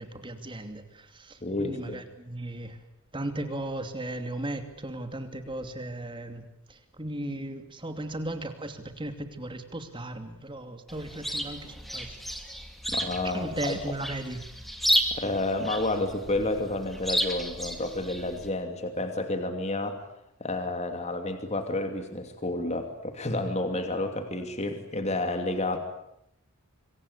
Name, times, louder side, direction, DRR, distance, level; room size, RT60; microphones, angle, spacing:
voice 1, 0.0-2.8 3.1-12.2 13.3-14.4, right 1 dB, 20° right, 7 dB, 2.7 m, -36 dB
voice 2, 1.4-2.0 12.9-13.7 14.9-20.0 20.4-25.8, left 2 dB, 30° left, 6 dB, 2.7 m, -30 dB
Chirp tweet, 10.9-18.5, equal, ahead, 2.6 m, -32 dB
26.5 x 24.0 x 8.3 m, 0.78 s
head